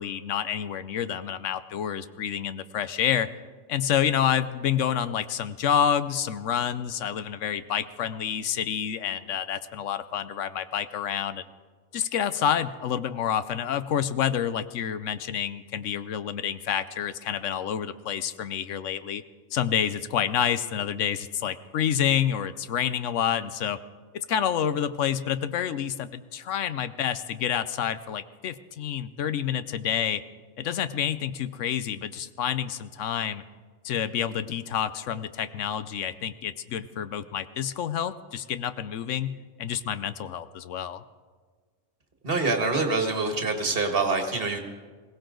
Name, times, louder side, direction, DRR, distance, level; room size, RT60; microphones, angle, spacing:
voice 1, 0.0-3.3 3.7-11.4 11.9-19.2 19.5-23.8 24.1-30.2 30.6-33.4 33.8-41.0, left 9 dB, 75° left, 13 dB, 1.0 m, -28 dB
voice 2, 42.2-44.6, right 3 dB, 45° right, 4 dB, 1.9 m, -25 dB
21.5 x 17.5 x 3.9 m, 1.5 s
omnidirectional pair, 1.3 m